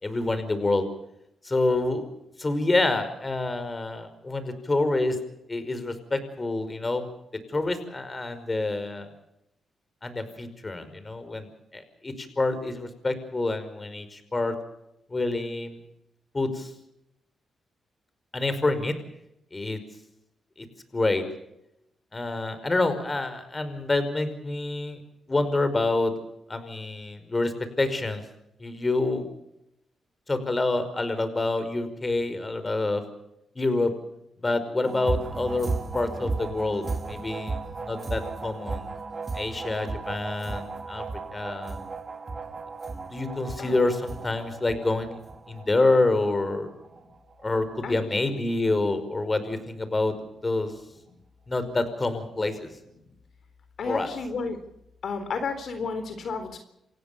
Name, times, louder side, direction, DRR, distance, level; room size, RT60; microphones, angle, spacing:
voice 1, 0.0-0.9 1.4-2.1 2.4-5.2 5.5-7.1 7.5-9.1 10.0-11.5 11.7-14.6 15.1-15.8 16.3-16.7 18.3-18.9 19.5-19.8 20.6-20.7 20.9-21.2 22.1-25.0 25.3-26.1 26.5-28.2 28.6-29.3 30.3-33.0 33.6-33.9 34.4-38.8 39.3-41.0 41.3-41.8 43.1-45.2 45.5-46.7 47.4-50.1 50.4-50.7 51.5-52.7 53.9-54.1, left 2 dB, 30° left, 11 dB, 5.3 m, -27 dB
sound 1, 34.8-47.9 48.3-48.4 48.8-48.9, right 3 dB, 40° right, 3.9 m, -35 dB
voice 2, 53.8-54.6 55.0-56.6, left 4 dB, 65° left, 9 dB, 3.9 m, -31 dB
29.0 x 16.0 x 7.0 m, 0.83 s
cardioid pair, 65°, 0 cm